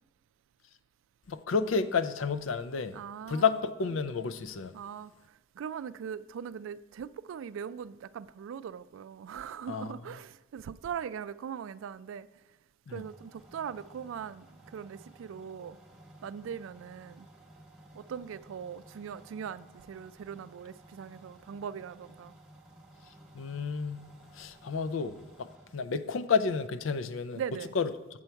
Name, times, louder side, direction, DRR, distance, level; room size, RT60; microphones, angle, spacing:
voice 1, 1.3-3.0 3.3-4.7 9.7-9.9 12.9-13.0 23.3-24.1 24.3-27.4 27.7-27.9, left 5 dB, 80° left, 0.5 m, -30 dB
voice 2, 2.9-3.4 4.7-5.1 5.5-12.3 12.9-15.8 16.2-17.3 17.9-22.4 27.3-27.8, right 7 dB, 80° right, 0.3 m, -40 dB
sound 1, 12.9-25.7, right 1 dB, 5° right, 1.0 m, -55 dB
7.7 x 7.0 x 4.5 m
head